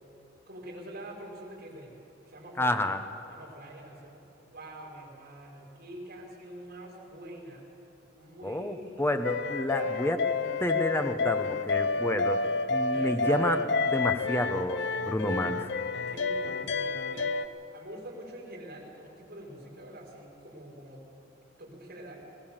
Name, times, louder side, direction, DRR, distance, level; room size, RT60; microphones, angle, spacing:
voice 1, 0.5-2.0 2.3-2.8 3.3-4.2 4.5-7.7 8.2-9.1 9.5-10.0 12.9-13.5 16.0-17.3 17.7-21.1 21.6-22.2, right 1 dB, 55° right, -3 dB, 5.2 m, -45 dB
voice 2, 2.6-3.0 8.4-10.2 10.6-15.7, left 1 dB, 10° left, 8 dB, 0.9 m, -30 dB
sound 1, 9.2-17.5, left 4 dB, 60° left, 0.7 m, -29 dB
21.0 x 18.0 x 7.3 m, 2.8 s
head